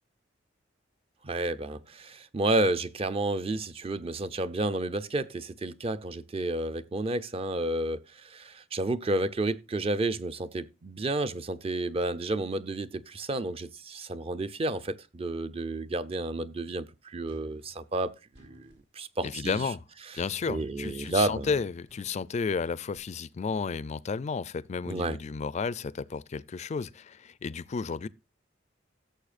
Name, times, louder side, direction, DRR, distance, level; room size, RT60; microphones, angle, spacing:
voice 1, 1.2-19.7 20.5-21.5 24.9-25.2, right 2 dB, 30° right, 0.5 m, -31 dB
sound 1, 17.3-18.8 20.1-23.0, left 1 dB, 90° right, 4.6 m, -57 dB
voice 2, 19.2-19.8 20.1-28.1, left 5 dB, 35° left, 0.4 m, -32 dB
16.5 x 6.9 x 2.4 m
head